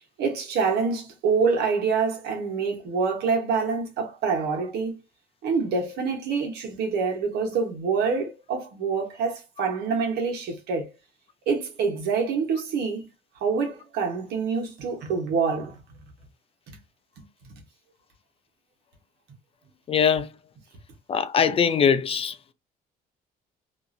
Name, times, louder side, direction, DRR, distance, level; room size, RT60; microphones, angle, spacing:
voice 1, 0.2-5.0 5.4-10.9 11.5-13.1 13.4-15.8 16.7-16.8 17.5-17.6, right 5 dB, 75° right, 1.1 m, -26 dB
voice 2, 19.9-20.3 21.1-22.4, left 7 dB, 35° left, 0.4 m, -21 dB
2.7 x 2.4 x 2.5 m
cardioid pair, 110°, 17 cm